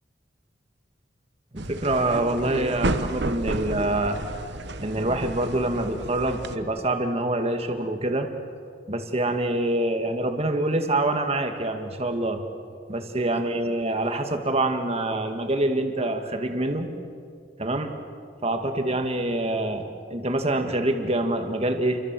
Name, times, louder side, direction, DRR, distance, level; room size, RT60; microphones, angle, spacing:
voice 1, 1.5-4.2 4.8-8.3 8.9-12.4 12.9-16.9 17.6-17.9 18.4-22.0, right 1 dB, 35° right, 5 dB, 2.0 m, -25 dB
sound 1, 1.6-6.6, right 2 dB, 70° right, 1.2 m, -31 dB
29.0 x 23.5 x 7.6 m, 2.4 s
head